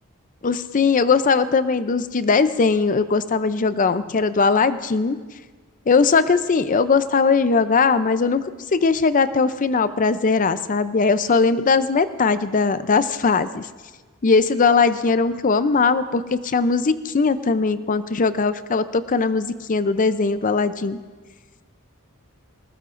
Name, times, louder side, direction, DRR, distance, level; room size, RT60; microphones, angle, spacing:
voice 1, 0.4-5.2 5.9-8.4 8.7-13.7 14.2-21.0, left 4 dB, 35° left, 13 dB, 0.5 m, -19 dB
21.0 x 19.0 x 2.5 m, 1.4 s
head